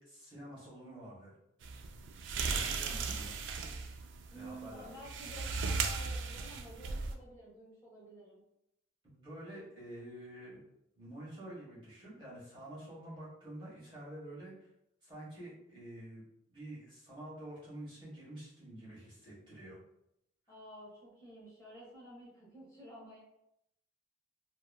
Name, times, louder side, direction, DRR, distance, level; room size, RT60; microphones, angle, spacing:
voice 1, 0.0-1.4 2.4-3.4 4.3-4.8 9.0-10.6 11.0-14.7 15.0-16.2 16.5-19.8, right 1 dB, 25° right, -8 dB, 1.2 m, -48 dB
sound 1, 1.6-7.1, right 4 dB, 65° right, 0.3 m, -37 dB
voice 2, 4.3-8.4 20.5-23.2, right 1 dB, 15° left, -8 dB, 0.9 m, -51 dB
2.8 x 2.4 x 2.3 m, 0.82 s
head